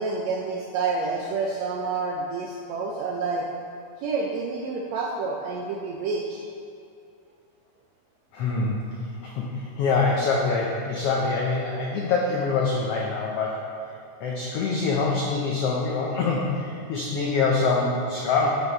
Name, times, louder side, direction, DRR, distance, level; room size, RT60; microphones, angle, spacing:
voice 1, 0.0-3.5 4.0-6.4, right 4 dB, 80° right, 0 dB, 1.6 m, -28 dB
voice 2, 8.3-8.8 9.2-13.7 14.2-18.5, left 4 dB, 80° left, -2 dB, 1.3 m, -25 dB
10.0 x 5.3 x 4.0 m, 2.6 s
omnidirectional pair, 3.7 m